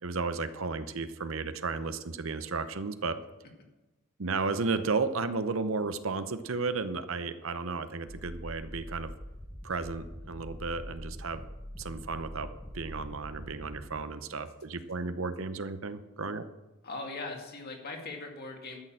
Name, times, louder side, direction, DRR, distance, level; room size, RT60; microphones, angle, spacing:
voice 1, 0.0-3.2 4.2-9.1 9.6-11.4 11.8-12.5 12.7-16.4, right 4 dB, 65° right, 11 dB, 0.8 m, -33 dB
sound 1, 8.0-13.9, equal, 10° left, 1.1 m, -44 dB
voice 2, 16.8-18.8, left 3 dB, 45° left, 2 dB, 2.2 m, -40 dB
12.5 x 6.8 x 7.6 m, 1.1 s
head